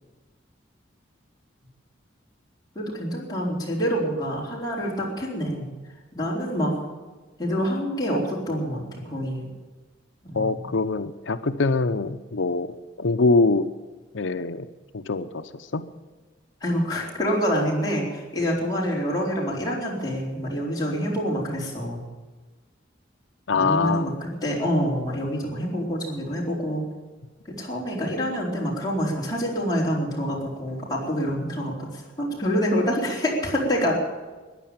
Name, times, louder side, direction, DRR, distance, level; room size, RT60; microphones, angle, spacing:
voice 1, 2.8-5.7 6.1-6.7 7.4-9.5 10.2-10.7 16.6-22.0 23.5-26.8 27.4-33.9, equal, 20° left, -4 dB, 4.1 m, -26 dB
voice 2, 10.3-12.7 13.0-13.7 14.1-14.7 14.9-15.9 23.5-24.1, left 3 dB, 85° left, 10 dB, 0.7 m, -23 dB
14.5 x 10.5 x 8.9 m, 1.3 s
head